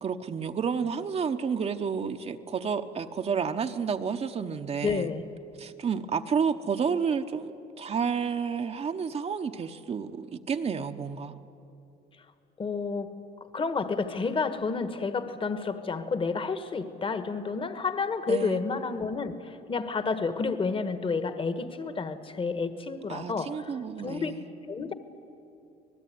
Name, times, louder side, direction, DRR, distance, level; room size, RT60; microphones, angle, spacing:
voice 1, 0.0-5.1 5.6-11.3 18.3-18.6 23.1-24.5, right 6 dB, 40° right, 6 dB, 1.0 m, -30 dB
voice 2, 4.8-5.2 12.6-13.1 13.5-23.7 24.0-24.3 24.7-24.9, left 4 dB, 30° left, 10 dB, 1.5 m, -30 dB
25.5 x 19.5 x 9.4 m, 2.8 s
cardioid pair, 110°, 17 cm